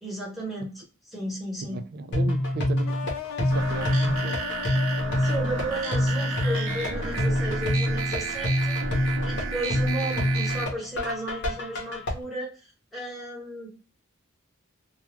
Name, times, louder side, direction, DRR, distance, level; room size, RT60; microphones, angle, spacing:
voice 1, 0.0-0.8 1.1-1.8 4.9-12.6 12.9-13.7, right 1 dB, ahead, 1.0 m, -34 dB
voice 2, 1.7-4.4, right 3 dB, 45° right, 0.3 m, -35 dB
sound 1, 2.1-12.1, left 1 dB, 55° left, 0.8 m, -26 dB
sound 2, 2.9-7.7, left 7 dB, 75° left, 0.5 m, -38 dB
sound 3, 3.5-10.6, right 4 dB, 75° right, 0.7 m, -32 dB
2.3 x 2.3 x 2.9 m
head